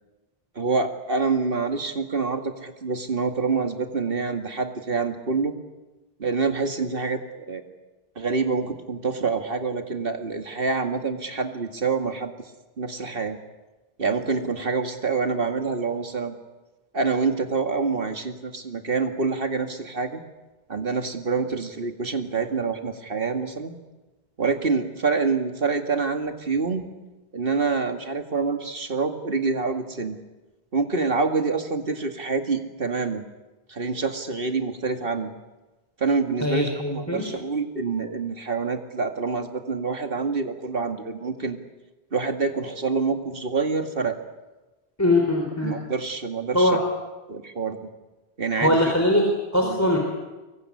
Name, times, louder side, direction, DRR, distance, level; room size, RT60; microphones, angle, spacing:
voice 1, 0.6-5.5 6.2-7.6 8.2-12.3 12.8-13.4 14.0-16.3 16.9-20.2 20.7-23.7 24.4-26.9 27.3-30.2 30.7-33.3 33.7-35.3 36.0-41.6 42.1-44.2 45.6-46.8 47.3-47.9 48.4-48.8 49.6-49.8, right 4 dB, 60° right, 6 dB, 2.3 m, -26 dB
voice 2, 36.4-37.3 45.0-45.8 46.5-46.8 48.6-50.0, left 1 dB, 15° left, 1 dB, 3.8 m, -21 dB
24.5 x 22.5 x 9.8 m, 1.1 s
omnidirectional pair, 1.0 m